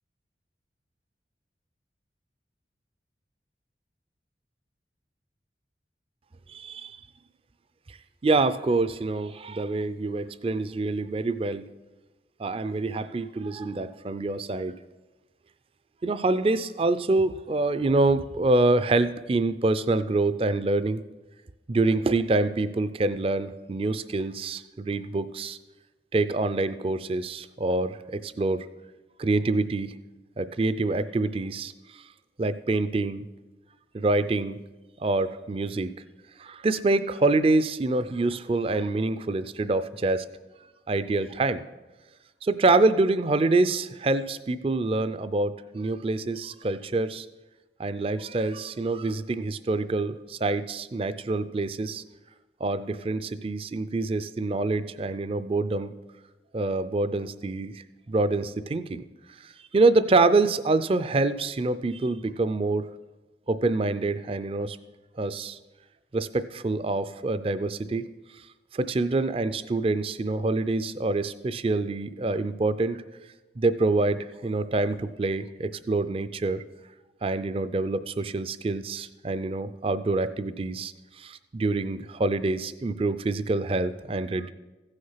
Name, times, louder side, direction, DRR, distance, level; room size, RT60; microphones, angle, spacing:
voice 1, 6.5-7.0 8.2-11.7 12.4-14.7 16.0-21.0 21.7-25.6 26.1-28.7 29.2-29.9 30.4-31.7 32.4-33.3 33.9-34.6 35.0-35.9 36.4-40.2 40.9-41.6 42.4-47.3 47.8-52.0 52.6-55.9 56.5-59.0 59.7-62.8 63.5-64.8 65.2-65.6 66.1-68.1 68.7-73.0 73.6-76.6 77.2-80.9 81.2-84.5, right 2 dB, 30° right, 13 dB, 0.4 m, -26 dB
15.0 x 6.6 x 5.6 m, 1.1 s
head